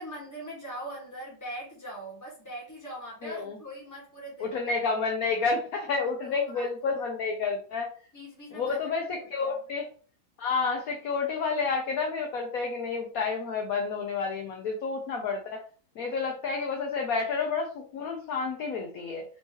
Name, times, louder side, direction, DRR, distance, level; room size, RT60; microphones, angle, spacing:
voice 1, 0.0-4.7 6.2-6.7 7.0-7.1 8.1-9.6, equal, 10° left, -5 dB, 1.4 m, -41 dB
voice 2, 3.2-3.6 4.4-7.9 8.5-9.9 10.4-15.6 16.0-19.2, left 4 dB, 65° left, 1 dB, 0.9 m, -30 dB
4.4 x 3.0 x 3.0 m, 0.41 s
omnidirectional pair, 2.1 m